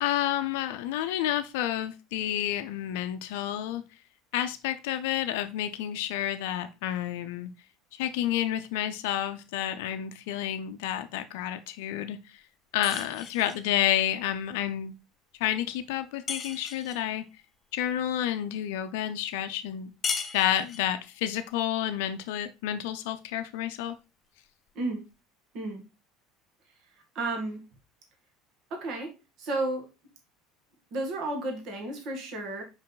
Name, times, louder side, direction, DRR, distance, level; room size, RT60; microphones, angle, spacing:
voice 1, 0.0-3.8 4.3-7.5 8.0-12.2 12.7-14.9 15.4-17.2 17.7-19.9 20.3-24.0, left 11 dB, 70° left, 9 dB, 0.5 m, -30 dB
sound 1, 12.8-13.7 16.3-17.1 20.0-21.0, left 5 dB, 35° left, 0.8 m, -35 dB
voice 2, 25.5-25.9 27.2-27.6 28.7-29.1 29.4-29.9 30.9-32.6, right 2 dB, 55° right, 2 dB, 1.8 m, -32 dB
5.3 x 4.8 x 3.9 m, 0.28 s
hypercardioid pair, 70°, 0 cm